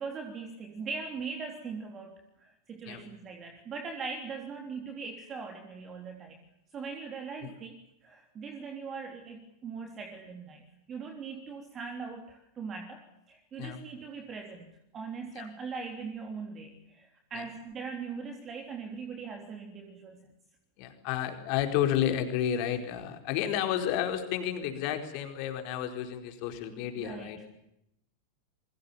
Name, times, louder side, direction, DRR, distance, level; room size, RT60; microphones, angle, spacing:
voice 1, 0.0-6.4 6.7-14.7 14.9-20.3 27.0-27.4, right 5 dB, 25° right, 4 dB, 3.5 m, -40 dB
voice 2, 20.8-27.4, left 10 dB, 45° left, 6 dB, 4.5 m, -31 dB
28.5 x 23.5 x 7.2 m, 0.80 s
figure-of-eight pair, 90°, 0 cm